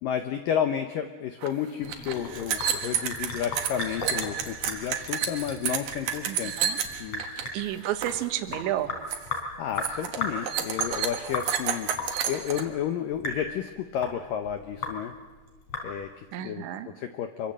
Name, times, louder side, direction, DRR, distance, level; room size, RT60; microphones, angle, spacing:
voice 1, 0.0-6.5 7.0-7.2 9.6-11.9 12.3-15.1 15.8-17.5, left 9 dB, 90° left, 7 dB, 1.9 m, -31 dB
sound 1, 1.4-1.5 1.7-7.5 7.8-8.2 8.5-8.8 9.1-9.4 9.8-12.6, right 8 dB, 60° right, 2.7 m, -30 dB
Sink (filling or washing) / Drip, 1.8-16.3, left 3 dB, 35° left, 4.6 m, -37 dB
voice 2, 6.3-6.8 7.5-8.9 16.3-16.9, right 12 dB, 80° right, 9 dB, 3.5 m, -31 dB
26.5 x 24.5 x 7.7 m, 1.3 s
omnidirectional pair, 5.4 m